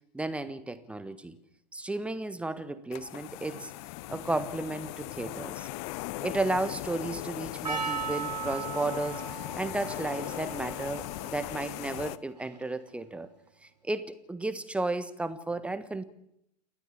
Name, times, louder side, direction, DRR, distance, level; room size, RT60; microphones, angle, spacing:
voice 1, 0.1-1.3 1.7-3.7 4.1-5.7 6.2-9.3 9.6-13.3 13.6-16.0, right 2 dB, 5° right, 13 dB, 1.3 m, -33 dB
sound 1, 2.9-12.2, left 18 dB, 40° left, 0.9 m, -39 dB
Percussion, 7.6-12.9, right 6 dB, 80° right, 2.8 m, -38 dB
29.0 x 13.5 x 8.5 m, 0.79 s
figure-of-eight pair, 100°, 21 cm